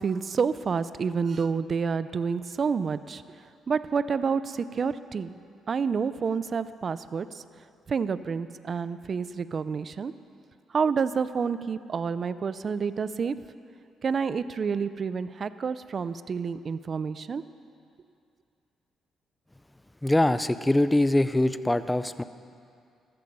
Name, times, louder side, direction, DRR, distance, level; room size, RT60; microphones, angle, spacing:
voice 1, 0.0-3.2 3.7-5.3 5.7-7.4 7.9-10.1 10.7-13.3 14.0-17.4, right 5 dB, 45° right, 14 dB, 0.5 m, -29 dB
voice 2, 20.0-22.2, left 1 dB, 10° left, 13 dB, 0.5 m, -23 dB
14.0 x 13.5 x 5.4 m, 2.4 s
cardioid pair, 90°, 0 cm